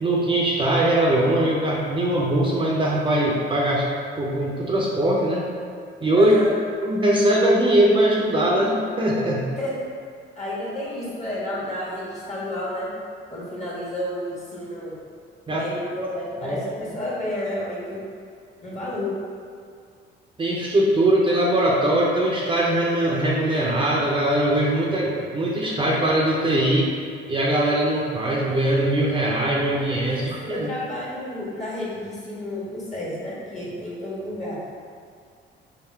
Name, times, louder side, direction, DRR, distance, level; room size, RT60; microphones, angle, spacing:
voice 1, 0.0-3.8 4.2-5.4 6.0-6.3 6.8-9.4 15.5-15.6 16.4-16.6 20.4-26.9 27.3-30.7, right 1 dB, 25° right, -3 dB, 0.6 m, -21 dB
voice 2, 6.1-6.5 9.6-9.7 10.3-12.9 13.3-14.9 15.5-18.0 18.6-19.1 30.1-34.6, left 1 dB, 35° left, -7 dB, 1.5 m, -31 dB
3.6 x 2.4 x 4.6 m, 2.2 s
cardioid pair, 90°, 20 cm